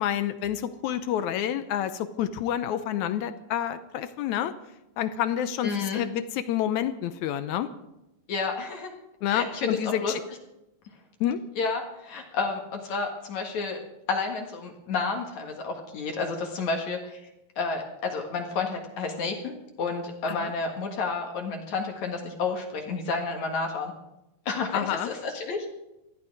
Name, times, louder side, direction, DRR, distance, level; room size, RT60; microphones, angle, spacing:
voice 1, 0.0-4.5 5.0-7.7 9.2-10.2 11.2-11.4 20.3-20.5 24.7-25.1, left 10 dB, 75° left, 12 dB, 1.8 m, -28 dB
voice 2, 5.6-6.1 8.3-8.9 9.2-10.1 11.6-13.8 14.1-17.2 17.6-23.9 24.5-25.8, left 4 dB, 60° left, 3 dB, 2.9 m, -30 dB
18.5 x 13.5 x 4.8 m, 0.90 s
omnidirectional pair, 4.0 m